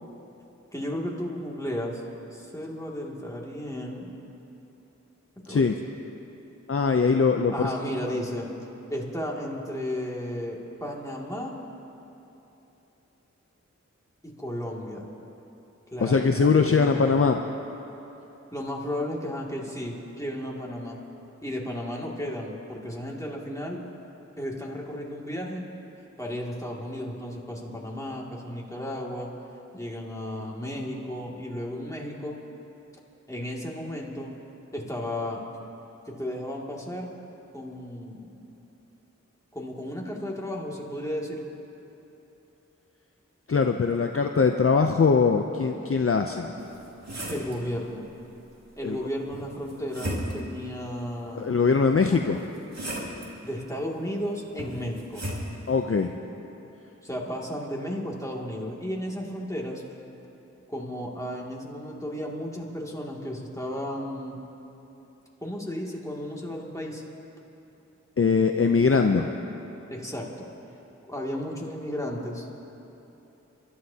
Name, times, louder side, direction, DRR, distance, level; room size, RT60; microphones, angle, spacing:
voice 1, 0.7-2.0 2.3-4.1 5.5-5.7 7.5-8.5 8.9-11.6 14.2-15.1 15.9-17.3 18.5-21.0 21.4-23.8 24.4-25.7 26.2-29.3 29.7-32.4 33.3-34.3 34.7-35.4 36.1-37.1 37.5-38.4 39.5-41.4 47.3-48.1 48.8-51.6 52.1-52.2 53.4-55.3 57.0-59.8 60.7-64.4 65.4-67.0 69.9-70.5 71.1-72.5, equal, 10° left, -3 dB, 2.4 m, -34 dB
voice 2, 6.7-7.7 16.0-17.4 43.5-46.5 48.8-49.0 51.3-52.4 55.7-56.2 68.2-69.3, left 5 dB, 50° left, 4 dB, 0.6 m, -22 dB
sound 1, 46.6-47.6 49.3-50.6 52.0-53.3 54.6-55.5, right 1 dB, 60° right, 2.2 m, -35 dB
28.5 x 13.0 x 2.8 m, 3.0 s
wide cardioid pair, 40°, 29 cm